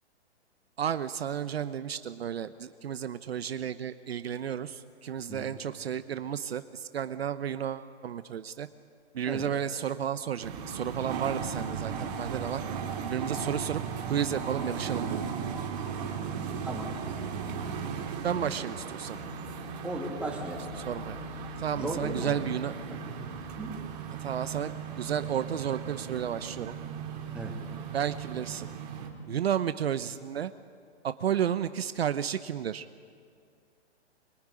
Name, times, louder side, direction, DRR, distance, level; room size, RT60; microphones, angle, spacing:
voice 1, 0.8-8.7 9.1-12.6 13.0-13.8 14.1-15.2 18.2-19.2 20.8-21.2 21.6-22.7 24.2-26.7 27.9-28.7 29.3-30.5 31.0-32.9, right 9 dB, 60° right, 12 dB, 1.0 m, -32 dB
sound 1, 10.4-29.1, right 6 dB, 35° right, 3.3 m, -37 dB
voice 2, 16.6-16.9 18.3-18.6 19.8-20.6 21.7-22.4 22.9-23.3 23.6-23.7 27.3-27.6, right 2 dB, 5° right, -2 dB, 2.6 m, -37 dB
24.5 x 22.0 x 9.9 m, 2.2 s
hypercardioid pair, 170°, 34 cm